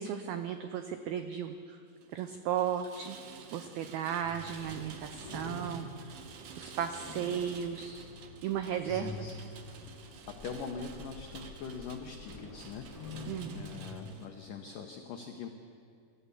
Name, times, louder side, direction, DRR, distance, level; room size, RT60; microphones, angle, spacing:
voice 1, 0.0-1.8 2.1-3.2 3.5-6.2 6.6-8.1 8.4-9.1 13.3-13.6, right 9 dB, 85° right, 8 dB, 2.1 m, -35 dB
Rain, 1.9-14.3, right 6 dB, 65° right, 2.3 m, -51 dB
sound 1, 4.2-14.0, left 3 dB, 5° left, 4.9 m, -47 dB
voice 2, 8.8-9.6 10.0-15.5, left 6 dB, 85° left, 3 dB, 1.8 m, -43 dB
27.0 x 13.5 x 8.4 m, 2.3 s
omnidirectional pair, 5.4 m